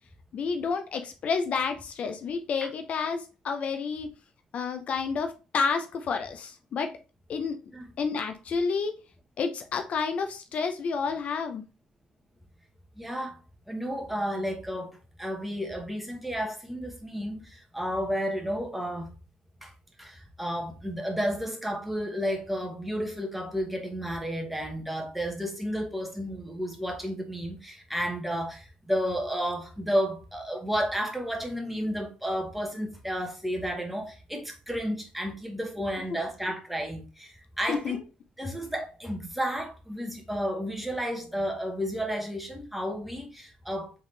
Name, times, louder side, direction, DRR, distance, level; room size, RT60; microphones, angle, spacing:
voice 1, 0.3-4.1 4.5-6.9 7.3-7.6 8.0-8.9 9.4-11.6 37.7-38.0, left 5 dB, 55° left, 0.6 m, -30 dB
voice 2, 13.0-13.4 13.7-19.1 19.6-19.7 20.0-38.0 38.4-43.9, equal, 5° right, 1.2 m, -32 dB
3.6 x 3.5 x 3.2 m
cardioid pair, 85°, 3 cm